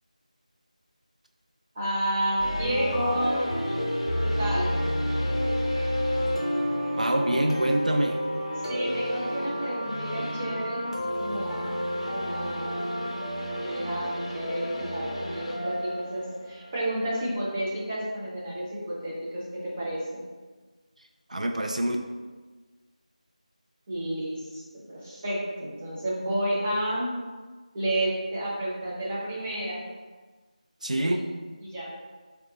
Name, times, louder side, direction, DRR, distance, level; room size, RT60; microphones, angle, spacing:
voice 1, 1.7-3.4 4.2-4.8 8.7-11.7 12.1-12.7 13.5-14.1 14.3-20.2 23.9-24.6 24.9-27.1 27.7-29.8 30.9-31.3 31.6-31.9, right 1 dB, 15° right, -7 dB, 0.5 m, -31 dB
sound 1, 2.4-17.2, equal, 50° left, 0.6 m, -30 dB
voice 2, 7.0-8.2 21.3-22.0 30.8-31.2, right 1 dB, 70° right, 3 dB, 0.4 m, -25 dB
3.8 x 2.3 x 2.7 m, 1.4 s
figure-of-eight pair, 170°, 4 cm